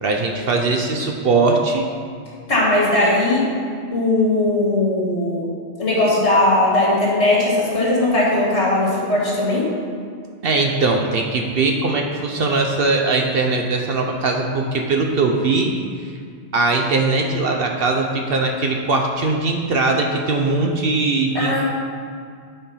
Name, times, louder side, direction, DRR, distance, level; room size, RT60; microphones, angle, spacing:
voice 1, 0.0-1.9 10.4-15.7 16.0-16.1 16.5-21.6, right 3 dB, 55° right, 2 dB, 0.8 m, -20 dB
voice 2, 2.5-3.5 3.9-5.4 5.8-9.6 21.3-21.6, left 2 dB, 65° left, -5 dB, 2.4 m, -18 dB
8.7 x 4.4 x 5.6 m, 2.2 s
omnidirectional pair, 1.3 m